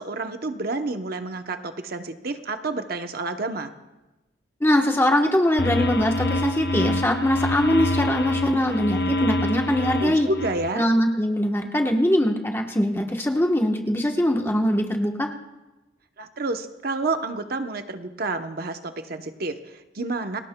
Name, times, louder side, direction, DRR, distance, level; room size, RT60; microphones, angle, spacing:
voice 1, 0.0-3.7 10.0-10.9 16.2-20.4, right 3 dB, 50° right, 7 dB, 0.8 m, -29 dB
voice 2, 4.6-10.3 10.7-15.3, left 1 dB, 15° left, 3 dB, 1.1 m, -22 dB
sound 1, 5.6-10.7, left 1 dB, 55° left, 0.6 m, -26 dB
28.0 x 19.5 x 2.2 m, 1.0 s
head